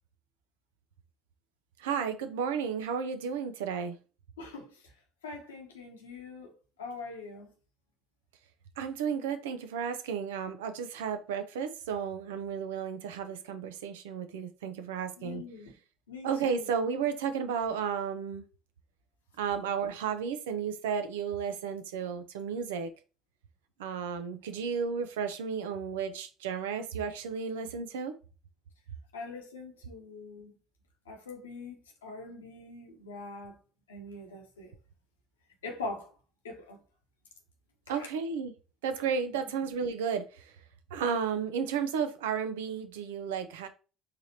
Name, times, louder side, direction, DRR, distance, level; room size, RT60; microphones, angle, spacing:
voice 1, 1.8-4.0 8.8-15.4 16.2-18.4 19.4-22.9 23.8-28.1 37.9-38.5 38.8-40.4 40.9-43.7, right 6 dB, 75° right, 0.5 m, -33 dB
voice 2, 4.4-4.8 5.2-6.5 6.8-7.5 15.2-15.8 16.1-16.7 29.1-30.5 31.1-33.6 33.9-34.7 35.6-36.1 36.4-36.8 37.9-38.1 39.3-39.4, left 3 dB, 85° left, 1.0 m, -43 dB
4.7 x 3.3 x 2.8 m
hypercardioid pair, 60°, 0 cm